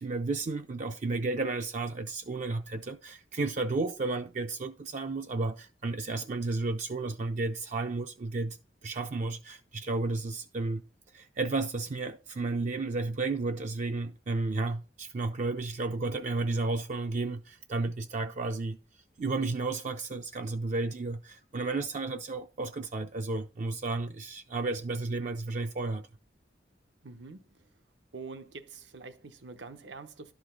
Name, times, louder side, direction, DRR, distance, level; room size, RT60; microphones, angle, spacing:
voice 1, 0.0-8.6 8.8-10.8 11.1-18.8 19.2-26.1, right 3 dB, 45° right, 0.4 m, -32 dB
voice 2, 27.0-27.7 28.1-30.3, right 4 dB, 90° right, 0.9 m, -45 dB
11.5 x 5.0 x 3.8 m
head